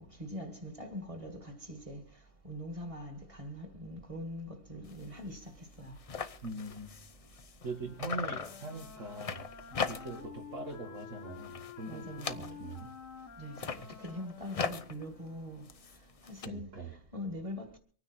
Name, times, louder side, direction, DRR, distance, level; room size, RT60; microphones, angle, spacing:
voice 1, 0.0-2.0 2.4-6.0 9.7-9.9 11.9-12.6 13.4-15.6 16.2-16.8 17.1-17.8, left 1 dB, 25° right, 2.3 m, -43 dB
sound 1, 4.8-5.1 5.4-5.5 5.7-7.7 8.0-10.4 10.7-11.1 11.4-12.9 13.4-16.5, left 5 dB, 35° left, 0.6 m, -40 dB
voice 2, 6.4-7.0 7.6-9.4 9.9-12.9 16.4-17.0, right 2 dB, 75° right, 2.5 m, -42 dB
Wind instrument woodwind instrument, 7.6-15.8, left 7 dB, 80° left, 1.7 m, -50 dB
24.5 x 9.7 x 4.5 m
omnidirectional pair, 1.3 m